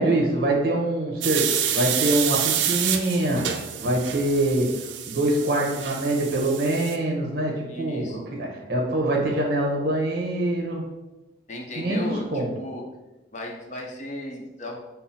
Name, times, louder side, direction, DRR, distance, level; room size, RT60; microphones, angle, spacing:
voice 1, 0.0-3.4 3.8-4.7 5.1-10.9 11.8-12.5, right 1 dB, 55° right, -1 dB, 1.1 m, -24 dB
sound 1, 1.2-7.0, right 9 dB, 80° right, 0.4 m, -28 dB
voice 2, 7.6-8.2 11.5-12.8 13.3-14.8, left 1 dB, 40° left, 1 dB, 0.7 m, -35 dB
5.6 x 2.1 x 4.2 m, 1.0 s
head